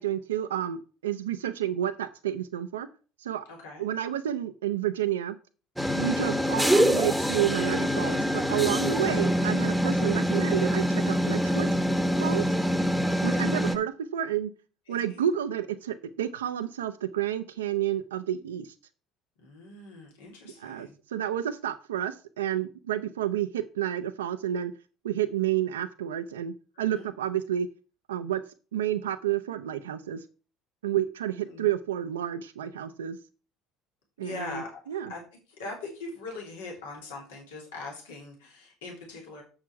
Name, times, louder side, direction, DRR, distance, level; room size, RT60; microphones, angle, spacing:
voice 1, 0.0-2.9 3.2-3.4 3.8-5.4 5.9-11.7 12.2-12.4 13.2-14.5 14.9-18.7 20.4-24.7 25.0-27.7 28.1-28.4 28.7-30.3 30.8-33.2 34.2-35.1, right 11 dB, 85° right, 10 dB, 0.5 m, -30 dB
voice 2, 3.5-3.9 12.8-13.4 14.9-15.2 19.4-21.0 26.7-27.1 31.5-31.7 34.2-35.2 35.6-39.4, left 3 dB, 80° left, -1 dB, 2.9 m, -42 dB
sound 1, 5.8-13.8, equal, 5° right, 1.0 m, -25 dB
7.4 x 6.3 x 4.6 m, 0.37 s
hypercardioid pair, 65°, 0 cm